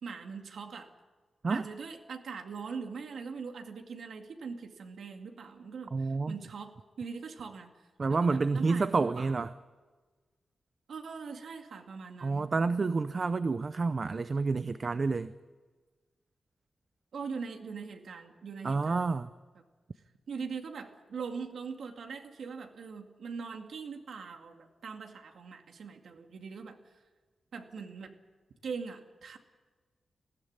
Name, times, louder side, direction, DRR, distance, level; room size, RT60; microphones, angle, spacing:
voice 1, 0.0-0.9 1.5-7.7 8.1-9.3 10.9-12.5 17.1-19.1 20.3-26.8 27.5-28.1 28.6-29.4, right 5 dB, 75° right, 4 dB, 2.2 m, -41 dB
voice 2, 5.9-6.4 8.0-9.5 12.2-15.3 18.6-19.3, right 4 dB, 35° right, 12 dB, 0.6 m, -29 dB
20.0 x 16.0 x 9.7 m, 1.3 s
wide cardioid pair, 155°, 0 cm